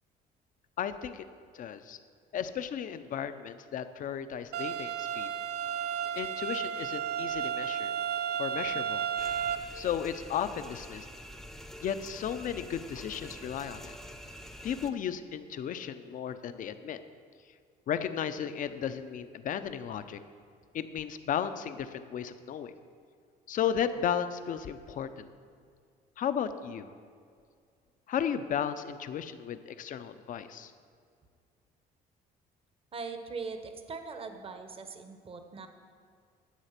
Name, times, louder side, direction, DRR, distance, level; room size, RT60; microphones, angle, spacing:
voice 1, 0.8-1.2 1.5-2.0 2.3-5.3 6.2-7.9 8.4-9.0 9.7-11.1 11.8-13.9 14.6-17.0 17.9-20.2 20.7-22.7 23.5-25.3 26.2-26.9 28.1-30.7, left 8 dB, 50° left, 11 dB, 0.6 m, -34 dB
sound 1, 4.5-9.6, right 8 dB, 75° right, 0.6 m, -33 dB
sound 2, 9.2-14.9, equal, ahead, 0.7 m, -46 dB
voice 2, 32.9-35.7, right 4 dB, 35° right, 7 dB, 1.0 m, -41 dB
11.0 x 7.5 x 5.9 m, 2.2 s
cardioid pair, 110°, 17 cm